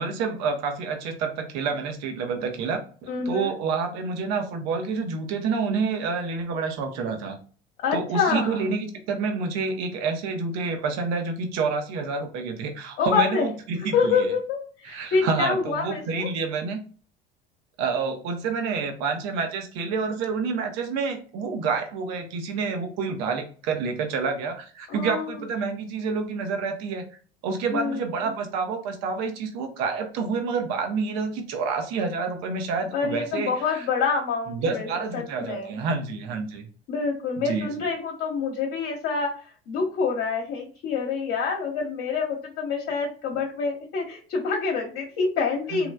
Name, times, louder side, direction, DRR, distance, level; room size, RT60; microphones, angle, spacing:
voice 1, 0.0-7.4 7.9-14.3 14.8-16.8 17.8-27.0 27.4-33.9 34.5-36.7 37.4-37.7 45.7-45.9, right 4 dB, 60° right, 4 dB, 1.0 m, -28 dB
voice 2, 3.1-3.5 7.8-8.7 13.0-13.5 13.8-16.3 24.9-25.2 27.7-28.0 32.9-34.9 35.1-35.7 36.9-45.9, left 5 dB, 55° left, -2 dB, 1.1 m, -26 dB
3.1 x 2.9 x 2.3 m, 0.40 s
hypercardioid pair, 75°, 30 cm